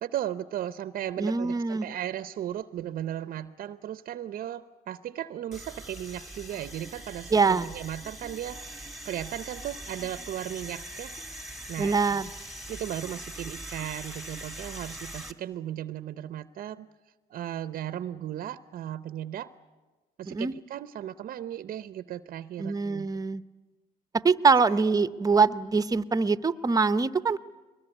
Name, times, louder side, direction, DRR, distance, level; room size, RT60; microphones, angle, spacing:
voice 1, 0.0-11.1 11.7-12.2 12.7-16.9 17.3-19.5 20.2-23.1 24.9-25.1, right 11 dB, 55° right, 13 dB, 0.7 m, -36 dB
voice 2, 1.2-1.9 7.3-7.7 11.8-12.3 20.3-20.5 22.6-23.4 24.2-27.4, right 4 dB, 20° right, 14 dB, 0.8 m, -24 dB
sound 1, 5.5-15.3, right 1 dB, ahead, 1.9 m, -42 dB
22.5 x 20.5 x 9.9 m, 1.2 s
cardioid pair, 110°, 17 cm